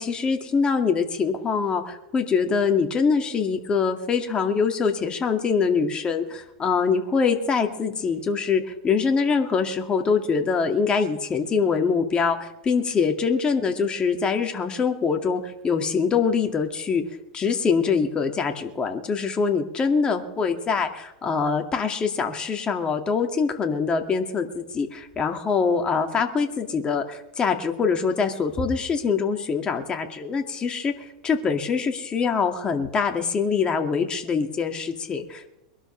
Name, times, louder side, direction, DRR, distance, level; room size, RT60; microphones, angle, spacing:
voice 1, 0.0-17.0 17.3-35.5, left 5 dB, 25° left, 5 dB, 2.1 m, -24 dB
22.5 x 12.5 x 3.3 m, 0.90 s
hypercardioid pair, 110°, 4 cm